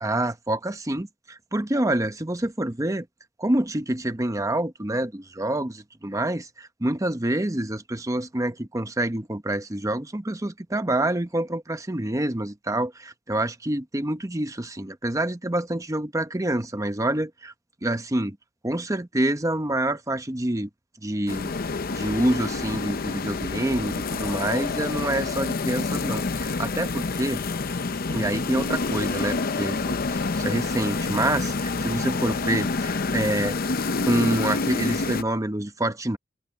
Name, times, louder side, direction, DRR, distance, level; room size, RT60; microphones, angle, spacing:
voice 1, 0.0-3.1 3.4-17.5 17.8-18.4 18.6-20.7 21.0-21.5 21.9-27.4 28.1-33.6 34.0-36.2, right 1 dB, 15° right, 0.9 m, -27 dB
sound 1, 21.3-35.2, left 3 dB, 50° left, 0.7 m, -28 dB
head